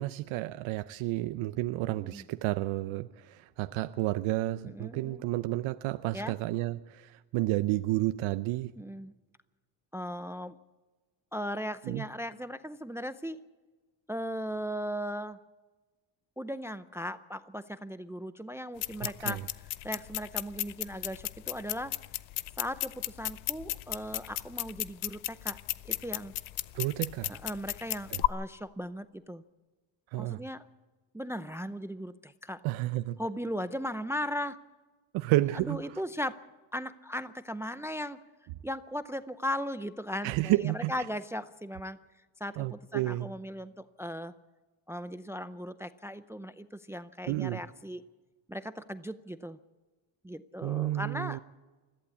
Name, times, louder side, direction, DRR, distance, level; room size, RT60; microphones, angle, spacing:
voice 1, 0.0-8.7 11.9-12.0 19.0-19.4 26.7-27.3 28.1-28.2 30.1-30.4 32.6-33.2 35.1-36.0 40.2-40.9 42.6-43.3 47.3-47.6 50.6-51.4, right 17 dB, 85° right, 12 dB, 0.7 m, -31 dB
voice 2, 1.9-2.2 4.6-5.2 6.1-6.4 8.8-9.1 9.9-10.6 11.3-13.4 14.1-15.4 16.4-19.4 19.8-21.9 22.6-25.6 25.8-26.3 27.3-29.4 30.2-30.6 31.1-32.6 33.2-34.6 35.5-36.4 36.7-38.2 38.6-42.0 42.4-44.3 44.9-48.0 48.5-49.6 50.2-51.4, equal, 5° right, 13 dB, 0.5 m, -37 dB
sound 1, 18.8-28.3, left 17 dB, 75° left, 0.8 m, -35 dB
21.0 x 15.0 x 8.3 m, 1.3 s
cardioid pair, 110°, 47 cm